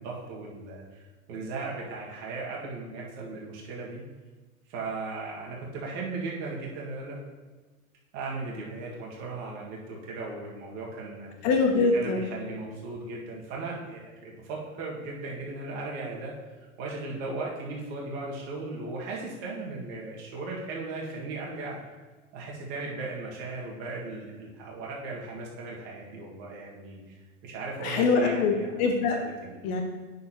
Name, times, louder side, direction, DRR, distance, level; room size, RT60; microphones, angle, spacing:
voice 1, 0.0-4.0 4.7-7.2 8.1-11.5 11.9-16.3 16.8-21.8 22.3-27.2 27.4-28.8 29.1-29.5, right 3 dB, 45° right, -3 dB, 1.8 m, -37 dB
voice 2, 11.4-12.2 27.8-29.2 29.6-29.8, left 4 dB, 20° left, 3 dB, 0.4 m, -24 dB
9.2 x 6.8 x 2.9 m, 1.3 s
hypercardioid pair, 135°, 43 cm